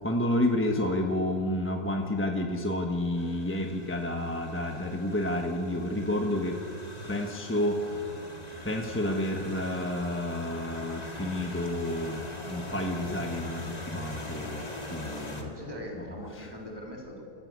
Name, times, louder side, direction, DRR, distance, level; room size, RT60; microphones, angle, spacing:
voice 1, 0.0-6.6 7.1-8.0 8.6-12.2 12.5-15.5 16.0-16.1 16.3-16.5, left 1 dB, 10° left, 2 dB, 1.2 m, -30 dB
sound 1, 3.2-15.4, left 1 dB, 25° left, 2.1 m, -42 dB
voice 2, 15.1-17.3, equal, 15° right, -2 dB, 3.7 m, -42 dB
27.0 x 14.5 x 8.2 m, 2.8 s
omnidirectional pair, 1.6 m